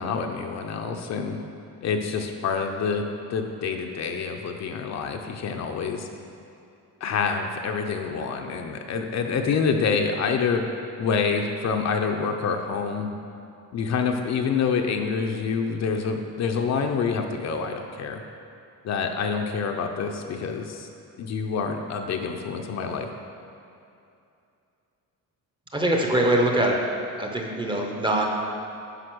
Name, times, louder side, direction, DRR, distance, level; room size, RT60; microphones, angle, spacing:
voice 1, 0.0-1.4 1.8-3.0 3.3-6.1 7.0-10.6 11.0-13.1 13.7-18.2 18.8-20.9 21.2-23.1, left 5 dB, 50° left, 4 dB, 0.6 m, -27 dB
voice 2, 25.7-26.8 27.2-28.3, right 1 dB, 15° right, 0 dB, 0.8 m, -23 dB
9.9 x 5.5 x 6.1 m, 2.6 s
cardioid pair, 175°, 35 cm